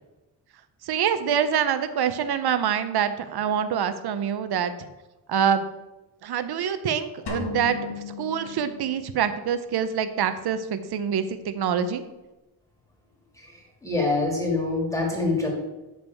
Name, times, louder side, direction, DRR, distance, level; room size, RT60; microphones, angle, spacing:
voice 1, 0.8-4.9 5.3-5.7 6.2-12.0, right 8 dB, 65° right, 11 dB, 0.7 m, -25 dB
sound 1, 7.3-9.3, left 5 dB, 75° left, 1.6 m, -35 dB
voice 2, 13.3-15.5, left 3 dB, 5° left, -1 dB, 2.0 m, -26 dB
8.7 x 5.3 x 4.6 m, 1.0 s
wide cardioid pair, 160°, 41 cm